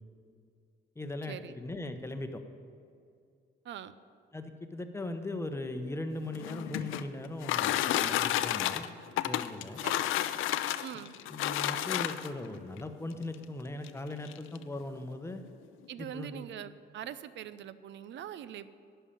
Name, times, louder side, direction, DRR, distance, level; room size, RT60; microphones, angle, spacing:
voice 1, 1.0-2.4 4.3-8.9 9.2-9.8 11.3-15.4 16.0-16.5, left 2 dB, 15° left, 7 dB, 0.9 m, -39 dB
sound 1, 6.2-12.5 13.3-13.4 13.8-13.9 14.2-14.6, left 13 dB, 85° left, 0.5 m, -31 dB
voice 2, 10.8-11.1 15.9-18.7, right 10 dB, 65° right, 15 dB, 0.5 m, -43 dB
11.0 x 5.7 x 8.7 m, 2.4 s
cardioid pair, 90°, 20 cm